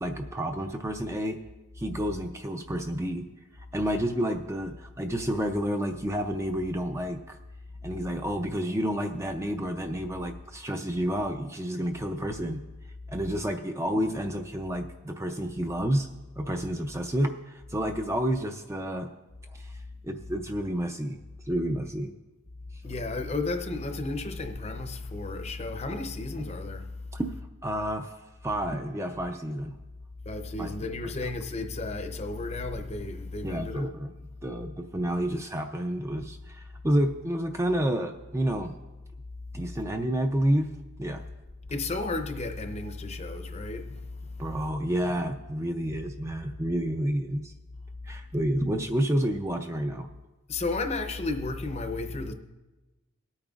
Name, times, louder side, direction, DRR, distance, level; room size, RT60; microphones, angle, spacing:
voice 1, 0.0-1.4 1.8-3.3 3.6-7.4 7.8-12.6 13.1-16.1 16.4-19.1 19.5-21.2 21.4-22.1 26.4-26.5 27.1-27.3 27.6-28.2 28.4-29.7 30.6-30.7 31.0-31.1 33.4-34.1 34.4-38.7 39.5-40.7 41.0-41.2 44.4-47.5 48.0-50.1, right 1 dB, 15° right, 0.4 m, -30 dB
voice 2, 22.8-26.9 30.3-33.9 41.7-44.1 50.5-52.3, left 3 dB, 30° left, 0.6 m, -33 dB
23.0 x 8.8 x 2.4 m
head